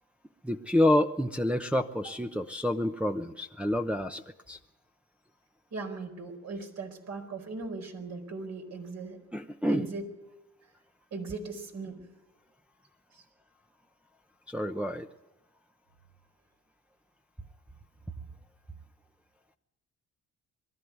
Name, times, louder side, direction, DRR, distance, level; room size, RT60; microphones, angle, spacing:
voice 1, 0.4-4.6 9.3-9.9 14.5-15.1, left 1 dB, 5° right, 3 dB, 0.8 m, -28 dB
voice 2, 5.7-9.2 9.7-10.1 11.1-12.1 13.1-13.2, right 3 dB, 60° right, 3 dB, 4.6 m, -38 dB
22.5 x 13.0 x 9.5 m, 0.98 s
cardioid pair, 90°, 30 cm